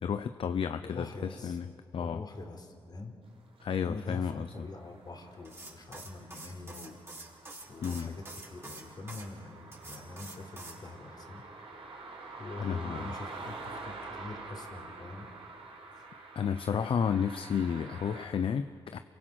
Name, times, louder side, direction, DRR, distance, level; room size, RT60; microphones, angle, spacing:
voice 1, 0.0-1.7 1.9-2.2 3.6-4.7 7.8-8.1 12.6-13.1 16.4-19.0, left 7 dB, 65° left, 10 dB, 0.7 m, -32 dB
voice 2, 0.8-1.6 2.0-3.1 3.7-7.0 7.2-7.4 7.7-11.4 12.4-15.3 16.0-16.1, left 2 dB, 45° left, 3 dB, 3.9 m, -44 dB
sound 1, 3.6-18.3, right 3 dB, 70° right, 4.6 m, -47 dB
sound 2, 5.4-9.3 9.7-10.8, right 2 dB, 25° right, 5.4 m, -46 dB
28.0 x 23.0 x 6.2 m, 2.3 s
cardioid pair, 70°, 10 cm